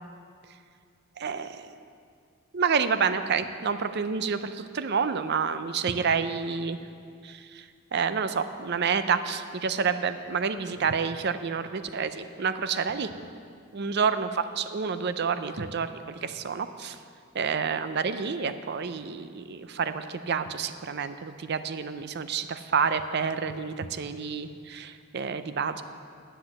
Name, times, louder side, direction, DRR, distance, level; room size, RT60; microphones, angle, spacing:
voice 1, 1.2-1.7 2.5-6.8 7.2-7.7 7.9-13.1 13.7-14.3 14.6-17.0 17.3-25.8, right 6 dB, 55° right, 11 dB, 0.5 m, -29 dB
10.0 x 7.8 x 7.3 m, 2.2 s
head